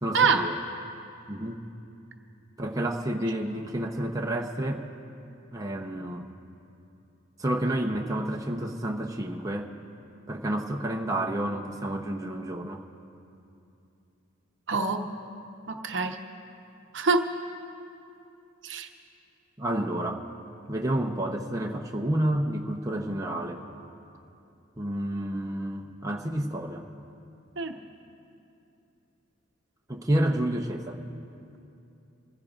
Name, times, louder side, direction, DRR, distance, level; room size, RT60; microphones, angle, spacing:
voice 1, 0.0-0.6 1.3-1.6 2.6-4.9 5.5-6.3 7.4-9.7 10.3-12.8 19.6-20.3 20.7-23.6 24.8-26.9 29.9-31.0, right 1 dB, 15° right, 0 dB, 0.7 m, -30 dB
voice 2, 14.7-15.1 15.7-16.2 16.9-17.3 18.6-18.9 27.6-27.7, right 4 dB, 65° right, 5 dB, 0.9 m, -25 dB
26.0 x 15.5 x 2.5 m, 2.8 s
head